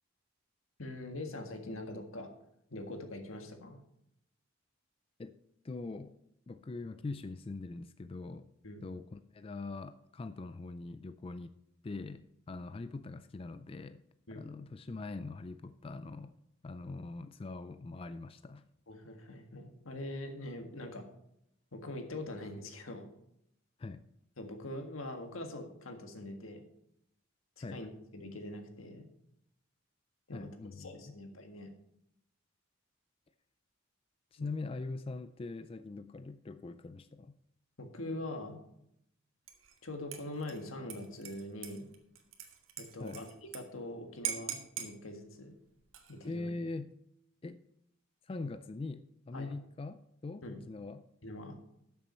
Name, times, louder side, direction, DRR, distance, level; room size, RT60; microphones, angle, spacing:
voice 1, 0.8-2.3 2.7-3.8 8.6-8.8 14.3-14.4 18.9-21.1 21.7-23.1 24.4-26.6 27.6-29.1 30.3-31.7 37.8-38.6 39.8-41.9 42.8-45.5 46.1-46.5 49.3-49.5 50.4-50.6 51.2-51.5, left 1 dB, 85° left, 5 dB, 1.7 m, -43 dB
voice 2, 5.6-6.1 6.5-8.5 8.8-11.5 11.8-14.0 14.3-16.3 16.6-18.7 23.8-24.0 27.6-27.8 30.3-31.2 34.3-37.4 43.0-43.3 46.2-46.9 47.4-47.6 48.2-51.0, left 3 dB, 30° left, 11 dB, 0.3 m, -42 dB
Dishes pots and pans / Liquid, 39.5-39.8 40.1-43.6 43.9-44.0 44.2-44.9 45.8-46.3, right 9 dB, 85° right, 1.5 m, -42 dB
12.5 x 6.9 x 4.3 m, 0.77 s
head